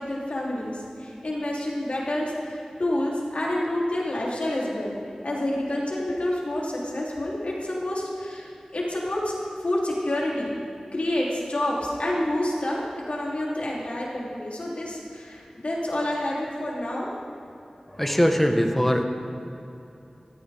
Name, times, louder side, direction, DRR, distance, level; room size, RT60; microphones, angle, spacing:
voice 1, 0.0-5.0 5.2-9.3 9.6-10.5 10.9-12.8 13.0-17.1, left 1 dB, 65° left, -5 dB, 3.3 m, -28 dB
voice 2, 17.9-19.0, equal, 5° left, 4 dB, 1.4 m, -21 dB
15.5 x 14.0 x 3.6 m, 2.9 s
wide cardioid pair, 45°, 2 cm